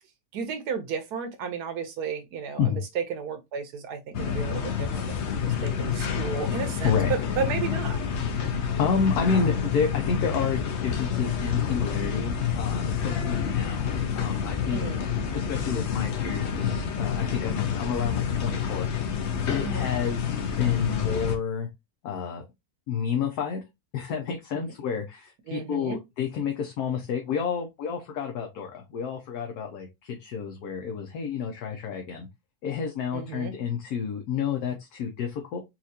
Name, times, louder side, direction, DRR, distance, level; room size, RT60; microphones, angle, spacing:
voice 1, 0.3-8.0 14.7-15.0 19.6-19.9 24.5-24.7 25.5-26.0 33.1-33.5, right 6 dB, 90° right, 1.4 m, -33 dB
sound 1, 4.1-21.4, left 7 dB, 55° left, 0.8 m, -28 dB
voice 2, 8.8-14.9 15.3-18.9 19.5-21.7 22.0-22.4 22.9-23.6 23.9-32.3 32.6-35.6, left 6 dB, 80° left, 1.3 m, -30 dB
4.4 x 2.4 x 2.7 m
omnidirectional pair, 1.6 m